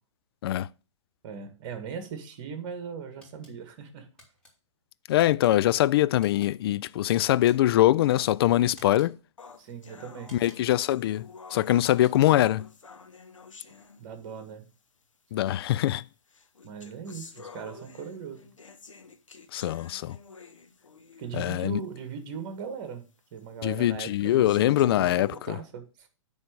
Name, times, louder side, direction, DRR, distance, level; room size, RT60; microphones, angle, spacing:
voice 1, 1.2-4.1 9.6-10.4 14.0-14.7 16.6-18.5 21.2-25.1 25.4-26.1, right 6 dB, 45° right, 1.9 m, -39 dB
sound 1, 3.2-3.5 4.2-4.5 5.2-5.5 6.2-6.5 7.2-7.8 8.7-9.1 10.2-10.8 11.7-12.3, left 1 dB, 5° left, 2.9 m, -54 dB
voice 2, 5.1-9.2 10.3-12.7 15.3-16.0 19.5-20.2 21.3-21.8 23.6-25.6, left 14 dB, 50° left, 0.4 m, -23 dB
sound 2, 9.4-14.5 15.4-15.5 16.3-21.5 22.0-22.1 22.6-22.7 23.4-23.5 24.2-25.4, left 5 dB, 90° left, 1.0 m, -50 dB
9.5 x 3.5 x 6.6 m
hypercardioid pair, 120°, 16 cm